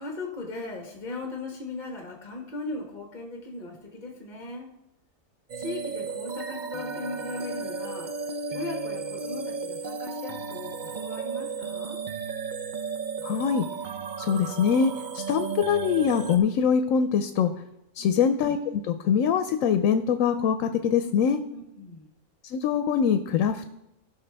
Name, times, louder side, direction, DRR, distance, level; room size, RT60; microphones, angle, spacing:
voice 1, 0.0-4.7 5.6-8.1 8.5-12.0 18.0-18.3 21.5-22.1, left 2 dB, 40° left, 1 dB, 1.4 m, -38 dB
sound 1, 5.5-16.4, right 5 dB, 50° right, 0.6 m, -34 dB
voice 2, 13.2-13.7 14.2-17.5 18.0-21.4 22.4-23.7, left 7 dB, 85° left, 9 dB, 1.0 m, -23 dB
15.5 x 5.9 x 3.4 m, 0.86 s
omnidirectional pair, 1.3 m